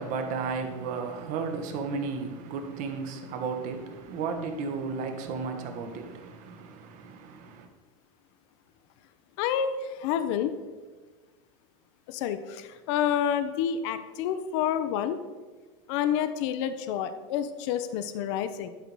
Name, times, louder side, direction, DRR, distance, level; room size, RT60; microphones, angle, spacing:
voice 1, 0.0-7.7, right 5 dB, 50° right, 1.3 m, -34 dB
voice 2, 9.4-10.5 12.1-15.2 15.9-18.7, left 9 dB, 65° left, 0.6 m, -29 dB
11.5 x 4.0 x 4.6 m
supercardioid pair, 120°, 17 cm